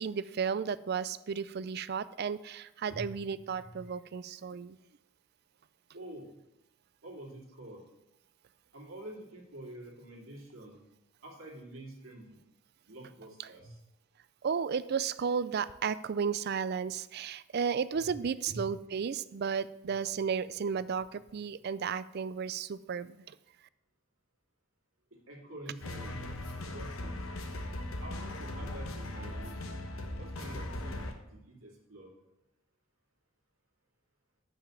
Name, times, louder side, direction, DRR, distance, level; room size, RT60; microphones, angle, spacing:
voice 1, 0.0-4.8 14.4-23.3, right 6 dB, 50° right, 17 dB, 0.4 m, -33 dB
voice 2, 2.9-3.8 5.9-6.4 7.0-7.8 8.7-10.8 11.2-12.4 12.8-13.7 17.9-18.1 18.5-18.7 25.3-26.3 26.6-27.2 28.0-29.7 30.2-31.0 31.3-32.1, right 1 dB, 80° right, -2 dB, 2.9 m, -47 dB
sound 1, 25.8-31.1, left 1 dB, 90° left, 1.2 m, -39 dB
6.9 x 6.5 x 7.3 m, 0.88 s
head